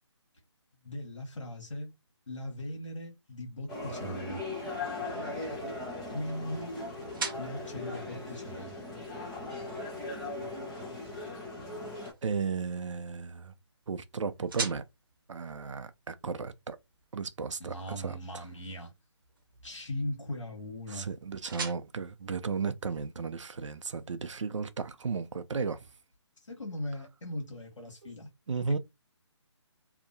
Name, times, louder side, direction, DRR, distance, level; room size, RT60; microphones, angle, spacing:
voice 1, 0.8-1.9 2.3-4.4 6.1-6.7 7.4-8.8 17.6-18.9 19.6-21.1 26.4-28.3 28.7-28.8, left 1 dB, 80° left, 1.2 m, -39 dB
sound 1, 3.7-12.1, left 2 dB, 5° left, 0.3 m, -38 dB
sound 2, 4.5-23.3, right 4 dB, 45° right, 0.7 m, -46 dB
voice 2, 12.2-13.5 13.9-14.8 15.3-16.8 17.1-18.4 20.9-25.9 28.0-28.1 28.5-28.8, right 5 dB, 80° right, 0.5 m, -35 dB
2.7 x 2.1 x 2.6 m
figure-of-eight pair, 150°, 16 cm